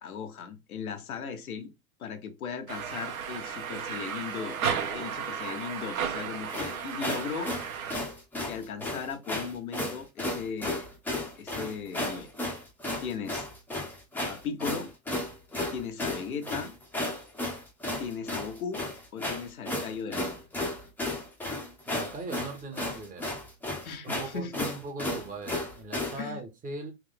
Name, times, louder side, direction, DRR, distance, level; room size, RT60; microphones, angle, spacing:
voice 1, 0.0-1.7 2.0-7.5 8.4-10.9 11.4-12.3 13.0-13.5 14.3-14.9 15.7-16.7 18.0-18.8 19.1-20.4 23.8-24.7 26.2-26.4, left 6 dB, 80° left, 1.1 m, -37 dB
sound 1, 2.7-8.0, right 7 dB, 80° right, 1.1 m, -34 dB
sound 2, 6.5-26.2, left 1 dB, 5° left, 0.8 m, -33 dB
voice 2, 21.8-23.3 24.0-26.9, right 2 dB, 20° right, 1.2 m, -40 dB
3.6 x 3.3 x 3.4 m
hypercardioid pair, 120°, 43 cm